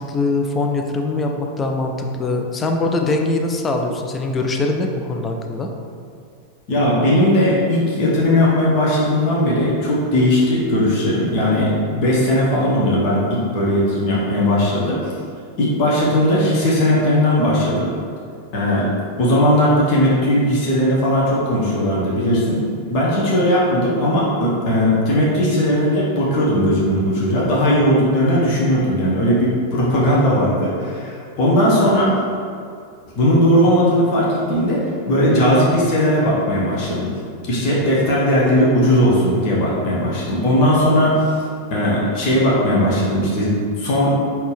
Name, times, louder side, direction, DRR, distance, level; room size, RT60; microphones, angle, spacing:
voice 1, 0.0-5.7, left 2 dB, 20° left, 3 dB, 0.4 m, -22 dB
voice 2, 6.7-15.1 15.6-17.9 18.5-18.9 19.2-22.6 22.9-32.1 33.2-34.8 35.1-37.1 37.5-41.3 41.7-44.2, equal, 45° left, -6 dB, 1.0 m, -17 dB
4.2 x 2.8 x 3.4 m, 2.3 s
figure-of-eight pair, 90°, 0 cm